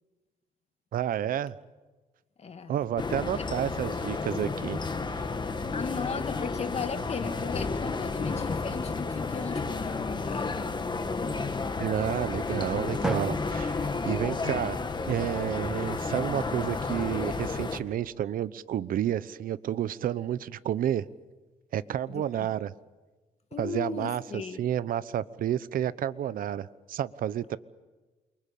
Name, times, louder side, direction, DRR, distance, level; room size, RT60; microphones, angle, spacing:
voice 1, 0.9-1.5 2.7-4.8 5.1-5.2 11.8-14.8 15.1-21.0 21.7-22.7 23.6-24.2 24.6-27.6, right 10 dB, 85° right, 16 dB, 1.0 m, -30 dB
voice 2, 2.4-2.7 3.4-3.5 5.7-10.6 22.1-22.5 23.5-24.6, left 5 dB, 50° left, 8 dB, 2.5 m, -36 dB
sound 1, 3.0-17.8, left 4 dB, 35° left, 2.1 m, -32 dB
Drum, 13.0-15.0, equal, 5° right, 1.5 m, -36 dB
29.0 x 24.0 x 8.6 m, 1.2 s
cardioid pair, 110°, 14 cm